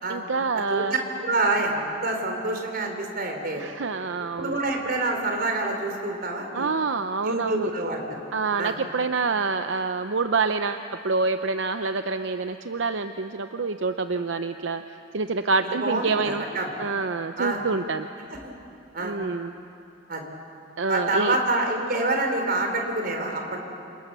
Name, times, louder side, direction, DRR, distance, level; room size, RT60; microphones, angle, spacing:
voice 1, 0.1-0.9 3.6-4.6 6.5-7.7 8.3-14.8 15.1-16.4 16.8-18.1 19.0-19.5 20.8-21.4, right 4 dB, 80° right, 8 dB, 0.7 m, -27 dB
voice 2, 0.7-3.6 4.2-6.7 7.2-8.2 8.6-8.8 15.8-16.7 17.4-17.6 18.4-18.5 18.9-19.2 20.1-20.3 20.9-23.6, right 2 dB, 55° right, 3 dB, 4.1 m, -27 dB
28.0 x 27.5 x 6.9 m, 2.7 s
head